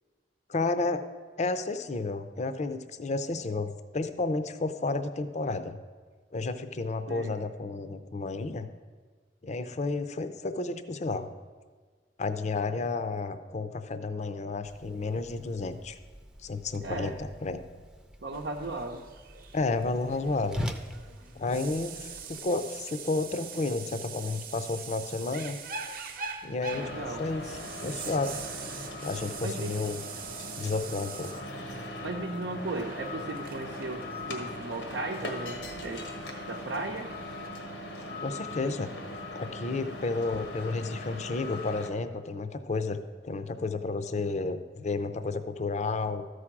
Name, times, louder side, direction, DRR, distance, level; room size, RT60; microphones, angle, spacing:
voice 1, 0.5-1.0 1.4-5.8 6.3-8.7 9.4-11.3 12.2-16.0 16.4-17.6 19.5-20.7 21.4-25.6 26.4-27.5 27.8-28.4 29.0-30.0 30.6-31.3 38.2-38.9 39.3-43.0 43.2-46.2, left 3 dB, 40° left, 10 dB, 0.5 m, -31 dB
voice 2, 7.1-7.4 16.8-17.2 18.2-19.0 26.7-27.2 29.4-29.7 32.0-36.1 36.5-37.1, right 2 dB, 90° right, -1 dB, 0.7 m, -36 dB
Whoosh swoosh swish, 14.6-22.4, equal, 5° right, 0.5 m, -43 dB
sound 1, 18.3-37.5, right 5 dB, 55° right, 0.8 m, -44 dB
sound 2, 26.7-41.9, left 1 dB, 90° left, 1.4 m, -40 dB
13.0 x 4.9 x 5.9 m, 1.5 s
head